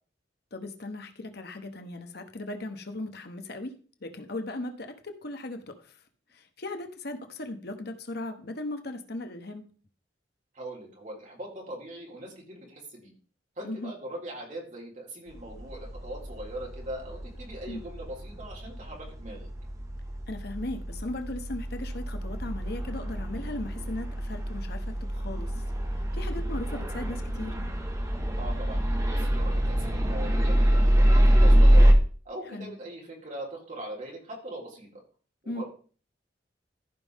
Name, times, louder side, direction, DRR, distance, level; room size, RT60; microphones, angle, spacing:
voice 1, 0.5-5.9 6.3-9.6 13.6-13.9 17.7-17.8 20.3-25.5 26.1-27.5 32.5-32.7 35.5-35.6, left 2 dB, 60° left, 7 dB, 1.1 m, -37 dB
voice 2, 10.5-13.1 13.6-19.5 28.4-31.9 32.2-34.9 35.4-35.6, right 1 dB, 45° right, -2 dB, 4.2 m, -41 dB
sound 1, 15.4-31.9, equal, 20° right, 1.4 m, -25 dB
15.0 x 5.3 x 3.6 m, 0.40 s
head